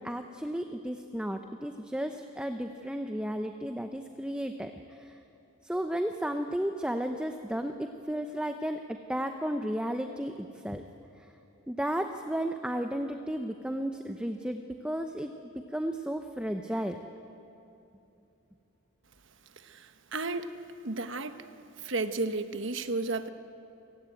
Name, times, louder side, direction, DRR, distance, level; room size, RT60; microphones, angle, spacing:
voice 1, 0.0-5.2 5.6-10.8 11.7-15.3 15.7-17.0, equal, 5° right, 6 dB, 0.7 m, -33 dB
voice 2, 20.1-20.5 20.8-21.4 21.8-23.3, right 3 dB, 60° right, 9 dB, 1.2 m, -32 dB
28.5 x 18.5 x 9.2 m, 2.9 s
head